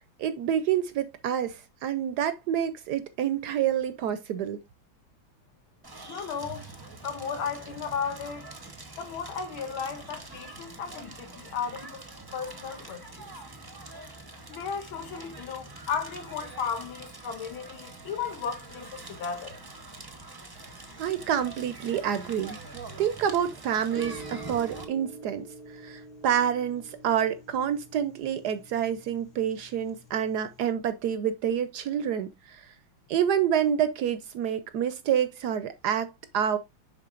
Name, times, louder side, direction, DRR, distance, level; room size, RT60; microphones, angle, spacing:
voice 1, 0.2-4.6 21.0-22.6 23.0-25.5 25.8-32.7 33.1-36.6, right 9 dB, 70° right, 1.0 m, -28 dB
Crackle, 5.8-24.8, right 3 dB, 25° right, 0.4 m, -44 dB
voice 2, 6.0-6.7 7.0-8.5 9.0-12.0 12.3-13.3 14.5-19.6, left 6 dB, 85° left, 1.9 m, -35 dB
sound 1, 20.6-30.6, right 1 dB, 25° left, 1.1 m, -48 dB
10.5 x 4.0 x 2.4 m
omnidirectional pair, 2.2 m